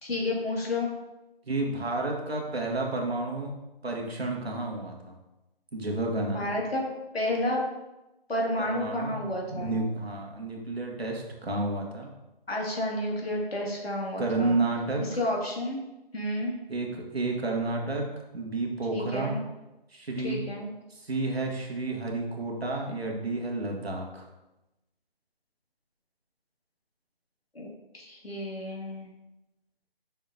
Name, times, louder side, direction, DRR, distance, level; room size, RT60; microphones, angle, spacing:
voice 1, 0.0-0.9 6.3-6.8 7.1-7.6 8.3-9.7 12.5-14.6 15.1-15.8 16.1-16.6 18.9-19.4 20.2-20.7 27.5-27.7 27.9-29.1, left 1 dB, 80° left, -2 dB, 2.3 m, -30 dB
voice 2, 1.4-3.5 3.8-5.2 5.7-6.5 8.6-12.1 14.2-15.0 16.7-19.3 19.9-20.4 20.9-24.3, right 2 dB, 85° right, 0 dB, 1.8 m, -31 dB
6.3 x 5.8 x 2.7 m, 0.97 s
figure-of-eight pair, 155°, 30 cm